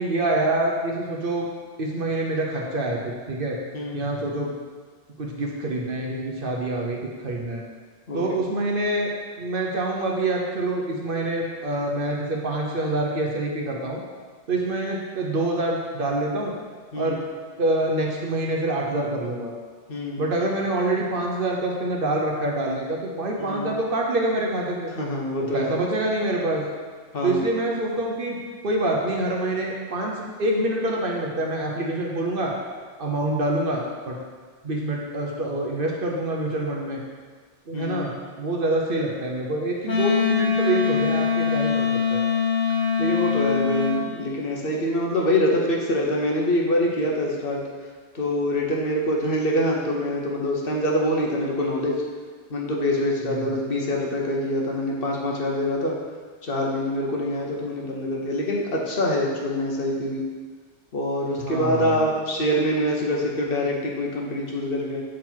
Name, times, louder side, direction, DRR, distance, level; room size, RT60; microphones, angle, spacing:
voice 1, 0.0-1.5 1.8-3.6 3.9-4.5 5.2-7.6 8.1-9.1 9.4-14.0 14.5-16.5 17.0-17.2 17.6-19.5 20.2-24.9 25.5-26.6 27.2-32.5 33.0-34.2 34.6-37.0 37.7-38.1 38.4-42.2 53.2-53.6 61.4-62.0, right 2 dB, 50° right, -1 dB, 0.9 m, -26 dB
voice 2, 3.7-4.1 8.1-8.2 16.9-17.2 19.9-20.2 23.5-23.7 25.0-25.7 27.1-27.4 37.7-38.2 43.0-47.6 48.1-52.0 52.5-56.0 56.4-60.2 60.9-65.0, left 1 dB, 55° left, -2 dB, 1.0 m, -25 dB
Wind instrument woodwind instrument, 39.8-44.0, left 6 dB, 75° left, 1.4 m, -23 dB
7.3 x 3.9 x 4.4 m, 1.5 s
omnidirectional pair, 1.2 m